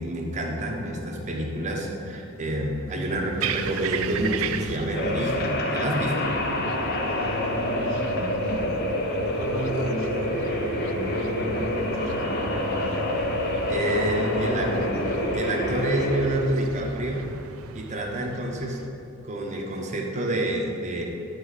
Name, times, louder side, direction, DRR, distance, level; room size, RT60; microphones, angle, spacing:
voice 1, 0.0-6.4 13.7-14.7 15.3-17.2 17.7-18.8 19.2-21.0, right 1 dB, 35° right, 0 dB, 1.1 m, -28 dB
sound 1, 2.9-18.9, right 5 dB, 85° right, 0.4 m, -36 dB
sound 2, 4.9-16.2, left 1 dB, 50° left, 1.0 m, -27 dB
voice 2, 7.4-8.8 9.1-10.3 10.7-13.3 13.9-15.1, equal, 80° left, -1 dB, 1.6 m, -34 dB
9.7 x 4.6 x 6.5 m, 2.9 s
head